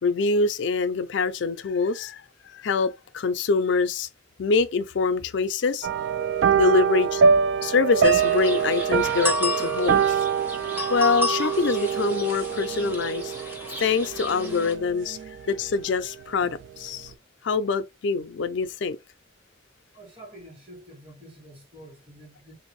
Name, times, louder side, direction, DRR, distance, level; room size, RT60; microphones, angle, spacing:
voice 1, 0.0-4.1 4.4-5.9 6.5-7.2 7.6-10.2 10.9-13.3 13.8-15.2 15.5-17.1 17.4-19.0, left 4 dB, 65° left, 0.4 m, -24 dB
sound 1, 5.8-15.4 15.7-16.1 16.4-16.5, right 7 dB, 70° right, 0.3 m, -24 dB
sound 2, 8.0-14.7, left 1 dB, 10° right, 0.7 m, -32 dB
voice 2, 19.9-22.5, right 1 dB, 30° right, 1.5 m, -47 dB
3.4 x 2.6 x 3.1 m
head